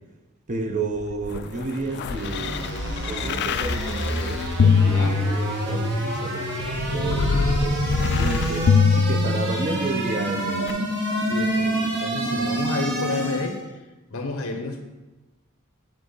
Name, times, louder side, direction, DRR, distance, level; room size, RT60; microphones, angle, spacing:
voice 1, 0.5-7.8 8.2-10.7, right 2 dB, 35° right, 4 dB, 0.7 m, -31 dB
sound 1, 1.0-5.9 6.6-9.9 10.7-10.8, left 5 dB, 50° left, 0.3 m, -23 dB
sound 2, 1.4-13.6, right 1 dB, 55° right, 1.3 m, -27 dB
voice 2, 4.8-5.2 11.3-13.6 14.1-14.8, left 2 dB, 75° left, 4 dB, 1.1 m, -30 dB
7.9 x 3.6 x 5.4 m, 1.1 s
head